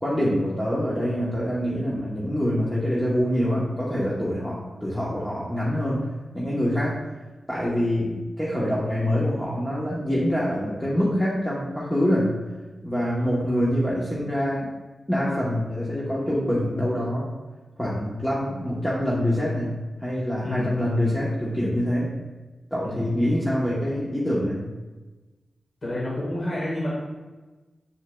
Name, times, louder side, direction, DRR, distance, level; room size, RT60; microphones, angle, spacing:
voice 1, 0.0-6.1 6.3-7.0 7.5-12.3 12.8-14.7 15.1-17.3 17.8-22.1 22.7-24.6, equal, 10° left, -6 dB, 1.1 m, -25 dB
voice 2, 20.4-20.7 22.8-23.1 25.8-26.9, left 1 dB, 40° left, -6 dB, 1.7 m, -29 dB
8.0 x 7.0 x 2.3 m, 1.2 s
wide cardioid pair, 130°, 0 cm